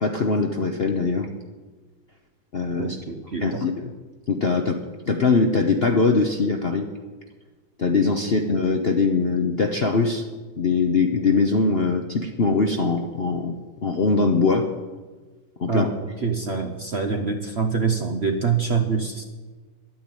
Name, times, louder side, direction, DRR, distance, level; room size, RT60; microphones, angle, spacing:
voice 1, 0.0-1.3 2.5-3.0 3.4-3.9 4.3-4.8 5.1-6.9 7.8-10.2 10.6-13.6 13.8-14.7 15.6-15.9, left 4 dB, 50° left, 3 dB, 0.7 m, -22 dB
voice 2, 2.8-3.6 15.7-19.2, right 5 dB, 50° right, 5 dB, 0.8 m, -25 dB
11.5 x 9.3 x 8.9 m, 1.3 s
omnidirectional pair, 2.0 m